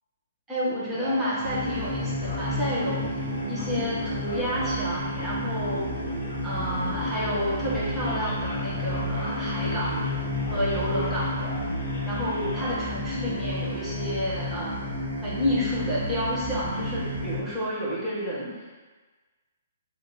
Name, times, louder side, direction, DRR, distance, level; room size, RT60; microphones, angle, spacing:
voice 1, 0.5-3.1 3.5-6.0 6.4-10.0 10.5-11.4 12.0-18.7, equal, 10° right, -9 dB, 1.3 m, -30 dB
Male speech man speaking, 0.9-12.9, left 1 dB, 55° left, 0.9 m, -39 dB
sound 1, 1.4-17.4, left 1 dB, 80° right, 1.0 m, -31 dB
3.2 x 2.8 x 4.1 m, 1.3 s
figure-of-eight pair, 120°, 0 cm